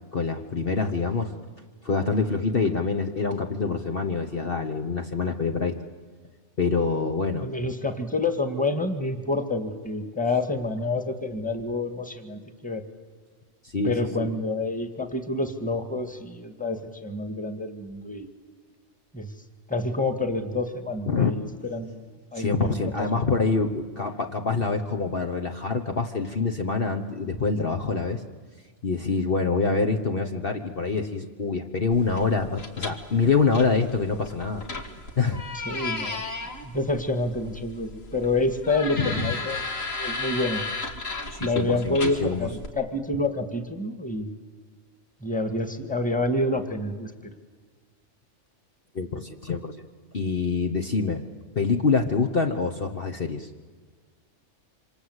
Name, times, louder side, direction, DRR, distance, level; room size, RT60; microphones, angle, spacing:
voice 1, 0.1-1.3 1.8-5.8 6.6-7.5 13.6-13.9 14.2-14.3 21.1-21.3 22.3-28.2 28.8-34.6 35.2-35.4 39.0-39.1 41.3-42.5 48.9-49.7 50.1-51.2 51.5-53.5, left 4 dB, 45° left, 4 dB, 1.4 m, -25 dB
voice 2, 7.4-12.8 13.8-18.3 19.1-19.3 19.7-23.1 35.5-39.6 40.0-40.6 41.4-44.3 45.2-47.3, left 2 dB, 5° left, 8 dB, 1.9 m, -28 dB
sound 1, 31.9-42.7, left 3 dB, 75° left, 2.7 m, -35 dB
27.0 x 26.0 x 8.1 m, 1.5 s
omnidirectional pair, 1.4 m